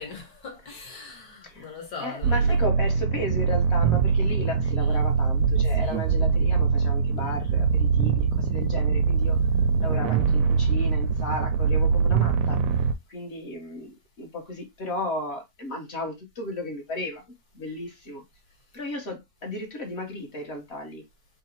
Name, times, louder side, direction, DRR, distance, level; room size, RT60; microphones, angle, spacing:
voice 1, 0.0-2.6 4.8-5.0 5.8-6.0 9.2-9.5, left 4 dB, 60° left, 2.0 m, -41 dB
voice 2, 2.0-9.4 9.8-12.7 13.1-17.2 17.5-18.2 18.7-21.0, left 1 dB, 45° left, 1.0 m, -34 dB
sound 1, 2.2-12.9, right 5 dB, 70° right, 0.8 m, -23 dB
3.9 x 2.0 x 4.3 m
omnidirectional pair, 1.9 m